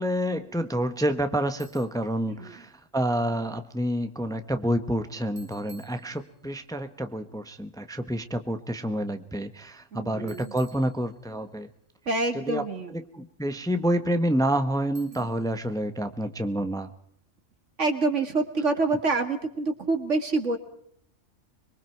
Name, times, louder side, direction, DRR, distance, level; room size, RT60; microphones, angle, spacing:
voice 1, 0.0-11.7 12.3-12.6 12.9-16.9, equal, 5° left, 8 dB, 1.0 m, -28 dB
Bicycle, 1.6-2.1 5.4-6.6 10.3-11.5 14.9-15.6, right 3 dB, 45° right, 3.5 m, -55 dB
voice 2, 2.3-2.6 9.9-10.5 12.1-13.0 15.1-15.3 17.8-20.6, right 3 dB, 75° right, 6 dB, 2.6 m, -27 dB
25.5 x 22.5 x 4.6 m, 0.69 s
omnidirectional pair, 1.3 m